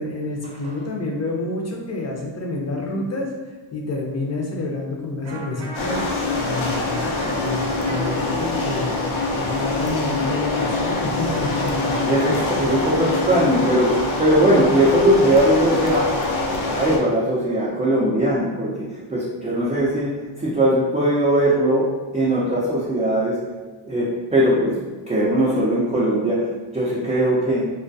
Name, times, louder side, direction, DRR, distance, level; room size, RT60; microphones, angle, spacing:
voice 1, 0.0-3.3 3.7-12.1, left 2 dB, 35° left, -1 dB, 0.6 m, -28 dB
Electric guitar, 5.2-10.9, right 1 dB, 75° right, 0.7 m, -37 dB
sound 1, 5.7-17.0, left 2 dB, 75° left, 0.6 m, -24 dB
voice 2, 11.9-16.2 16.7-23.4 23.8-24.8 25.1-26.5 26.7-27.6, right 1 dB, 15° right, -7 dB, 0.5 m, -20 dB
2.3 x 2.2 x 2.6 m, 1.3 s
cardioid pair, 70°, 48 cm